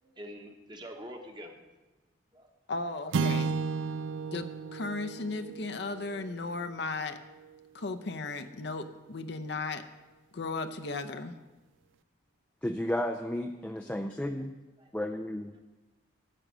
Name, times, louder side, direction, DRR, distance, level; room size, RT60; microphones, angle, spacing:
voice 1, 0.0-1.6 2.3-2.5 13.7-14.5 14.8-15.2, equal, 25° right, 3 dB, 1.1 m, -47 dB
voice 2, 2.7-3.5 4.3-7.2 7.7-9.8 10.3-11.4, left 3 dB, 60° left, 10 dB, 0.6 m, -36 dB
sound 1, 3.1-7.6, right 4 dB, 75° right, 0.4 m, -34 dB
voice 3, 12.6-14.5 14.9-15.5, left 1 dB, 5° left, 5 dB, 0.3 m, -33 dB
9.9 x 7.9 x 6.2 m, 1.1 s
head